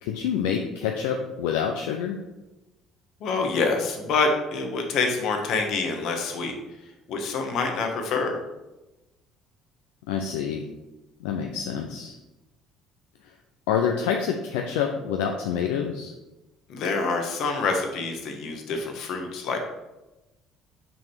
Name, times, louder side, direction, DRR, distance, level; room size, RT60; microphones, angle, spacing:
voice 1, 0.0-2.2 10.1-10.6 11.2-12.2 13.7-16.1, left 7 dB, 85° left, 3 dB, 0.5 m, -27 dB
voice 2, 3.2-6.6 7.1-8.4 16.7-19.6, left 4 dB, 65° left, 3 dB, 1.3 m, -26 dB
6.1 x 5.3 x 4.6 m, 1.0 s
supercardioid pair, 70°, 0 cm